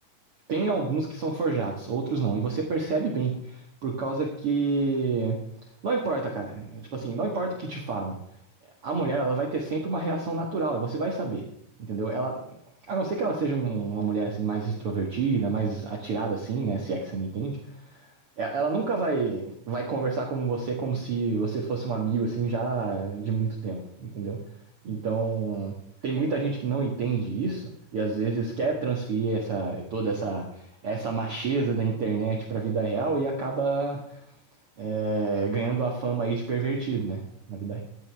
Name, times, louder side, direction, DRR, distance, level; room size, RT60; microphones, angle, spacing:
voice 1, 0.5-5.4 5.8-8.2 8.8-11.4 11.8-12.4 12.9-18.1 18.4-24.4 24.8-25.7 26.0-34.2 34.8-37.2 37.5-37.8, right 4 dB, 65° right, 0 dB, 1.3 m, -28 dB
14.5 x 11.0 x 3.4 m, 0.74 s
omnidirectional pair, 5.1 m